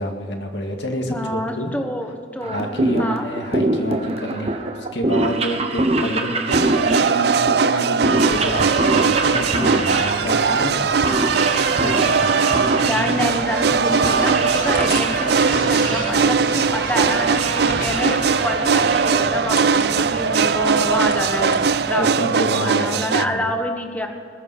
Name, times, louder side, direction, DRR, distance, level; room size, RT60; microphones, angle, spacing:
voice 1, 0.0-1.7 2.4-11.0 11.8-12.3 22.0-23.4, equal, 75° left, 2 dB, 2.0 m, -28 dB
voice 2, 1.1-2.7 3.0-3.3 12.9-24.1, left 1 dB, 10° left, 4 dB, 1.2 m, -27 dB
sound 1, 2.4-19.8, right 2 dB, 35° right, 1.1 m, -25 dB
sound 2, 6.5-23.3, right 5 dB, 60° right, 0.4 m, -20 dB
sound 3, 8.3-21.8, left 1 dB, 45° left, 2.4 m, -33 dB
20.0 x 7.3 x 7.7 m, 2.3 s
head